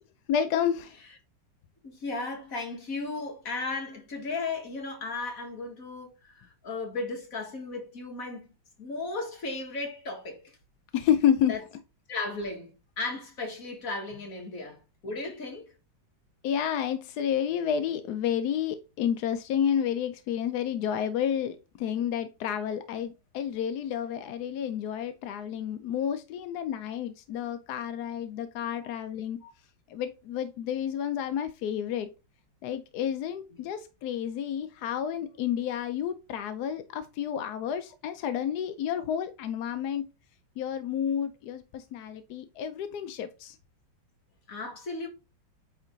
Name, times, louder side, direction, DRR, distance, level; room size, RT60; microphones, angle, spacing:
voice 1, 0.3-1.0 10.9-11.5 16.4-29.4 29.9-32.1 32.6-40.0 40.6-43.6, left 9 dB, 70° left, 0.9 m, -30 dB
voice 2, 1.8-8.5 8.8-10.5 11.5-11.6 12.1-14.8 15.0-15.7 28.8-28.9 29.4-29.5 44.5-45.1, left 3 dB, 45° left, 2.1 m, -35 dB
9.0 x 3.3 x 3.8 m
omnidirectional pair, 2.1 m